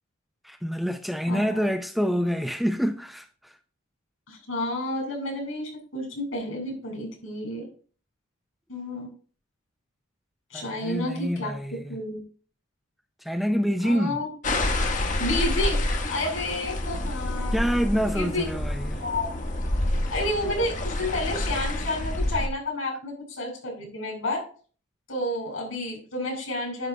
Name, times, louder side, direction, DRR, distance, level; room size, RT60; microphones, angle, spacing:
voice 1, 0.4-3.5 10.5-12.0 13.2-14.2 17.5-19.0, equal, ahead, 0.6 m, -27 dB
voice 2, 1.3-1.7 4.3-7.6 8.7-9.1 10.5-11.5 11.9-12.2 13.8-14.3 15.2-17.6 18.1-18.5 19.0-19.3 20.1-24.4 25.1-26.9, left 1 dB, 75° left, 5.2 m, -30 dB
sound 1, 14.4-22.5, left 1 dB, 40° left, 1.3 m, -28 dB
10.5 x 3.8 x 6.8 m
head